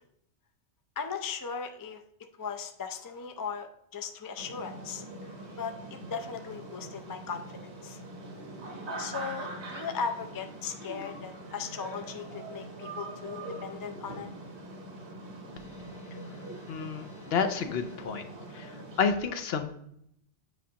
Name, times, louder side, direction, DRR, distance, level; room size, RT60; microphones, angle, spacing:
voice 1, 1.0-2.0 2.4-8.0 9.0-14.3, left 6 dB, 30° left, 5 dB, 0.4 m, -38 dB
sound 1, 4.4-19.1, right 2 dB, 75° right, 1.4 m, -43 dB
voice 2, 16.7-18.2 18.5-19.7, left 6 dB, 65° left, 8 dB, 0.8 m, -30 dB
7.9 x 5.1 x 2.8 m, 0.72 s
omnidirectional pair, 1.1 m